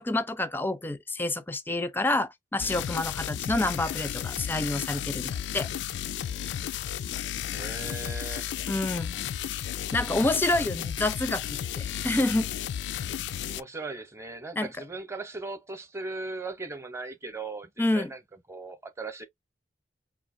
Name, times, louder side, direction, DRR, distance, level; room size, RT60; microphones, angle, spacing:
voice 1, 0.0-5.7 8.7-9.2 9.9-11.4 11.8-12.5 14.6-14.7 17.8-18.1, left 2 dB, 10° left, 0.5 m, -28 dB
sound 1, 2.6-13.6, left 10 dB, 85° left, 0.3 m, -33 dB
voice 2, 3.5-3.9 7.5-8.5 13.5-18.2 18.5-19.2, right 3 dB, 15° right, 0.8 m, -38 dB
5.0 x 2.6 x 2.5 m
head